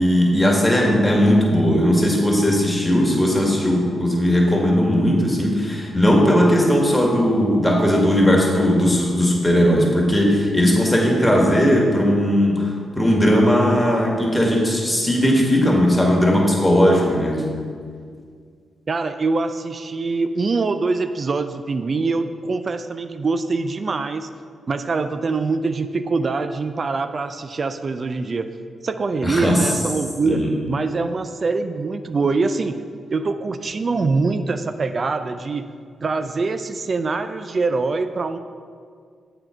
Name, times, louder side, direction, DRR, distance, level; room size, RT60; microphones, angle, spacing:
voice 1, 0.0-17.4 29.2-29.7 30.2-30.5, equal, 10° left, -2 dB, 2.0 m, -18 dB
voice 2, 18.9-24.3 24.7-28.5 28.8-32.8 33.1-35.7 36.0-38.4, right 3 dB, 50° right, 9 dB, 0.4 m, -24 dB
7.5 x 4.5 x 5.0 m, 2.1 s
hypercardioid pair, 40°, 0 cm